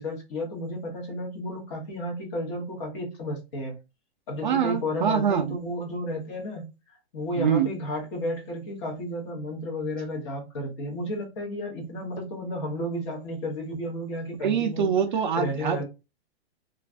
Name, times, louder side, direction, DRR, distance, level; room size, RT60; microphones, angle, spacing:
voice 1, 0.0-3.8 4.3-14.9 15.4-15.8, left 1 dB, 30° left, 0.9 m, -32 dB
voice 2, 4.4-5.6 7.4-7.7 14.4-15.8, right 7 dB, 50° right, 0.4 m, -24 dB
2.5 x 2.4 x 3.3 m
hypercardioid pair, 170°, 32 cm